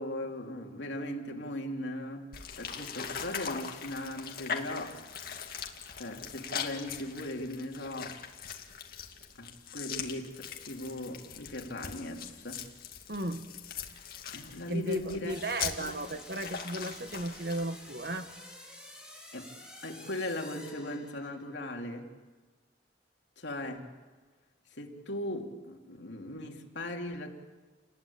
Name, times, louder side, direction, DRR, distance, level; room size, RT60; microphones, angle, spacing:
voice 1, 0.0-2.3 2.6-5.0 6.0-8.2 9.4-12.6 14.3-15.3 15.8-15.9 19.3-19.5 19.8-22.1 23.4-23.9 24.8-27.3, left 1 dB, 75° left, 2 dB, 3.0 m, -38 dB
sound 1, 2.3-18.3, left 7 dB, 50° left, 2.3 m, -41 dB
voice 2, 13.1-13.4 14.7-18.3, right 1 dB, 55° right, 8 dB, 1.6 m, -35 dB
sound 2, 15.3-21.4, left 1 dB, 5° right, 3.7 m, -50 dB
29.5 x 21.0 x 8.7 m, 1.4 s
head